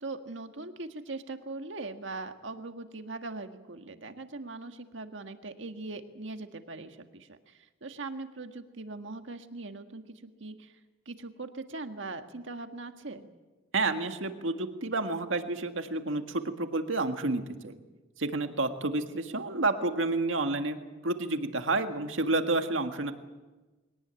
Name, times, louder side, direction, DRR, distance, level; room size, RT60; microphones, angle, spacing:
voice 1, 0.0-10.8 11.0-13.3, right 3 dB, 70° right, 7 dB, 1.7 m, -41 dB
voice 2, 13.7-17.8 18.2-23.1, right 2 dB, 85° right, 7 dB, 1.8 m, -30 dB
22.0 x 18.0 x 9.0 m, 1.2 s
head